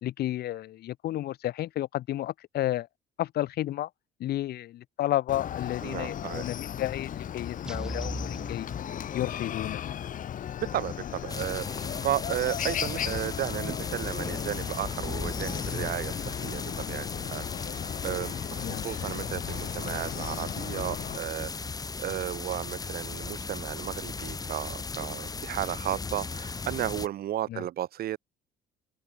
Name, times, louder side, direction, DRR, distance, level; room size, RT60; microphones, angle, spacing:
voice 1, 0.0-2.9 3.2-3.9 4.2-8.7 9.1-9.8 18.6-18.9 27.5-27.6, left 14 dB, 70° left, 2.3 m, -32 dB
Chicken rooster, 5.3-21.2, left 10 dB, 50° left, 2.8 m, -36 dB
voice 2, 5.8-6.5 10.6-11.7 12.0-28.2, right 12 dB, 65° right, 2.2 m, -34 dB
sound 1, 7.7-9.6, right 1 dB, 5° right, 5.9 m, -39 dB
sound 2, 11.3-27.1, left 4 dB, 20° left, 1.7 m, -37 dB
open air
cardioid pair, 110°, 17 cm